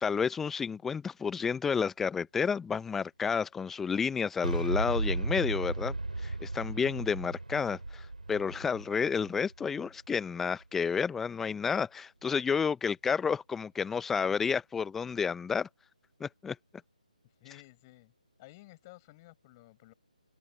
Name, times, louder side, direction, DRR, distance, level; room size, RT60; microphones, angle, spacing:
voice 1, 0.0-6.0 6.2-15.7 16.2-16.6, left 6 dB, 5° left, 1.0 m, -31 dB
Boom, 4.4-10.3, right 2 dB, 75° right, 3.9 m, -35 dB
voice 2, 17.4-18.1 18.4-19.9, left 21 dB, 25° left, 7.0 m, -54 dB
figure-of-eight pair, 145°, 4 cm